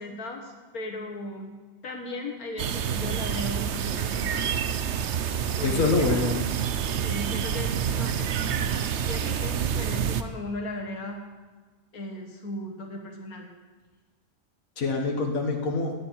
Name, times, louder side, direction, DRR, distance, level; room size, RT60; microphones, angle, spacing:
voice 1, 0.0-1.5 1.8-4.5 5.6-6.2 7.0-11.2 11.9-13.5, left 1 dB, 90° left, 2 dB, 2.0 m, -37 dB
sound 1, 2.6-10.2, right 8 dB, 60° right, 0.9 m, -28 dB
voice 2, 5.6-6.4 14.8-16.0, left 3 dB, 70° left, 1 dB, 2.0 m, -25 dB
17.5 x 11.5 x 4.6 m, 1.3 s
omnidirectional pair, 1.5 m